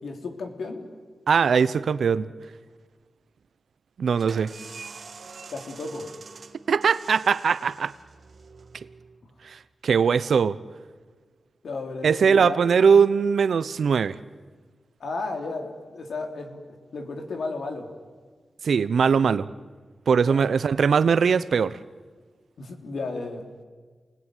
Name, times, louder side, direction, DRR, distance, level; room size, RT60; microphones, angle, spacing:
voice 1, 0.0-0.9 5.5-6.1 11.6-12.6 15.0-17.9 20.1-20.5 22.6-23.5, left 3 dB, 85° left, 4 dB, 3.3 m, -34 dB
voice 2, 1.3-2.3 4.0-4.5 6.7-7.9 9.4-10.6 12.0-14.2 18.6-19.5 20.1-21.8, right 6 dB, 85° right, 16 dB, 0.8 m, -21 dB
sound 1, 4.1-9.6, right 5 dB, 65° right, 1.6 m, -45 dB
28.5 x 20.5 x 9.2 m, 1.5 s
cardioid pair, 75°, 0 cm